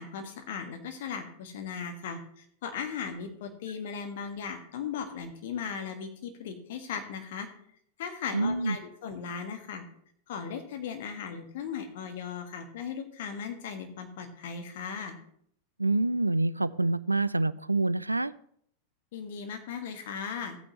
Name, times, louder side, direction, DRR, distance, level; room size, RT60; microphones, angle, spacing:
voice 1, 0.0-7.5 8.0-9.8 10.3-15.2 19.1-20.6, left 6 dB, 55° left, 5 dB, 1.6 m, -37 dB
voice 2, 8.3-8.8 15.8-18.3, right 2 dB, 85° right, 18 dB, 0.3 m, -26 dB
14.5 x 9.0 x 3.0 m, 0.67 s
figure-of-eight pair, 90°, 0 cm